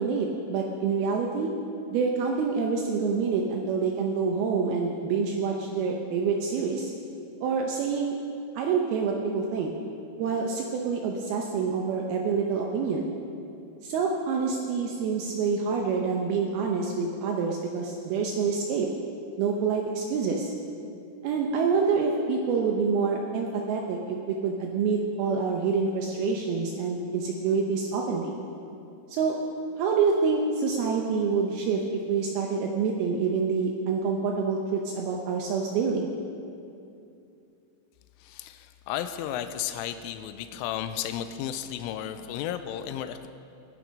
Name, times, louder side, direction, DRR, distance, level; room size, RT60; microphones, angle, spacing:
voice 1, 0.0-1.5 1.9-6.9 7.4-8.1 8.6-9.7 10.2-13.1 13.8-18.9 19.4-20.5 21.2-28.4 29.1-29.4 29.8-36.1, right 5 dB, 85° right, 0 dB, 2.2 m, -27 dB
voice 2, 38.2-43.3, left 10 dB, 90° left, 9 dB, 3.1 m, -33 dB
20.5 x 9.1 x 5.2 m, 2.6 s
omnidirectional pair, 5.6 m